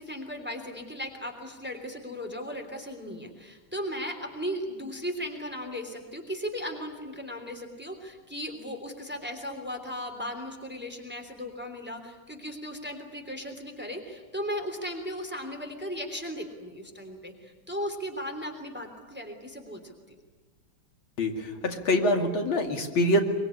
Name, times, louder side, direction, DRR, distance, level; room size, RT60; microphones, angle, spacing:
voice 1, 0.0-19.9, equal, 5° right, 5 dB, 3.2 m, -36 dB
voice 2, 21.2-23.2, left 1 dB, 80° left, 4 dB, 3.3 m, -25 dB
23.5 x 23.0 x 9.9 m, 1.3 s
omnidirectional pair, 2.2 m